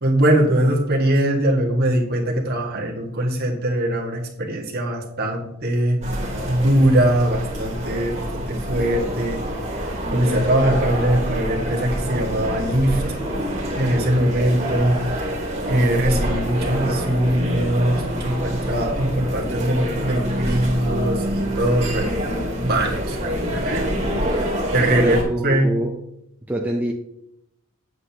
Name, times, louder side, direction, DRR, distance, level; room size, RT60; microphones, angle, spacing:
voice 1, 0.0-6.0 6.4-9.4 10.1-13.0 13.8-15.0 15.7-22.1 22.6-24.0 24.3-24.4 24.7-25.2 25.4-25.7, right 1 dB, 50° right, 0 dB, 1.6 m, -21 dB
sound 1, 6.0-25.2, equal, 30° right, 1.9 m, -26 dB
voice 2, 24.9-25.9 26.5-26.9, equal, 10° right, -1 dB, 0.6 m, -24 dB
7.9 x 7.9 x 2.9 m, 0.80 s
head